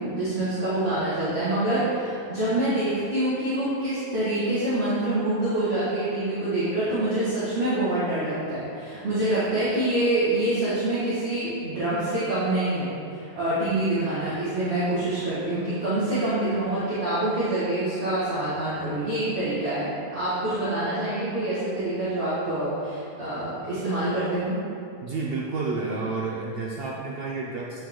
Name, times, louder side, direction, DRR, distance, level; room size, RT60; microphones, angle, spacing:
voice 1, 0.0-24.6, right 1 dB, 40° right, -13 dB, 2.1 m, -26 dB
voice 2, 25.0-27.8, right 3 dB, 80° right, -2 dB, 0.5 m, -30 dB
8.6 x 5.3 x 3.7 m, 2.6 s
omnidirectional pair, 1.7 m